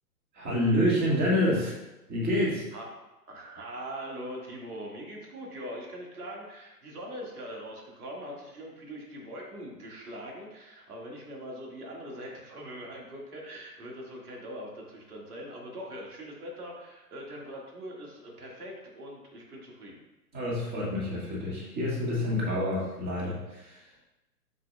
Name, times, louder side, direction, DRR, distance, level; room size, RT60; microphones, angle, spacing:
voice 1, 0.3-1.7 2.1-2.6 20.3-23.8, left 1 dB, 20° right, -6 dB, 2.1 m, -27 dB
voice 2, 3.3-20.0, equal, 70° right, -2 dB, 2.2 m, -42 dB
7.4 x 6.1 x 2.4 m, 1.0 s
figure-of-eight pair, 120°, 47 cm